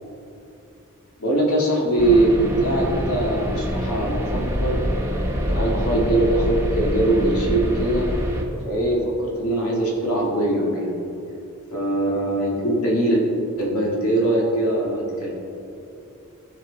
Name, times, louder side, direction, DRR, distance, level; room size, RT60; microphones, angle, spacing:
voice 1, 1.2-4.8 5.5-8.1 8.6-11.0 11.7-13.2 13.6-15.3, right 1 dB, 85° left, -2 dB, 2.0 m, -21 dB
sound 1, 2.0-8.4, equal, 10° right, 1.0 m, -25 dB
15.0 x 5.9 x 4.0 m, 2.7 s
head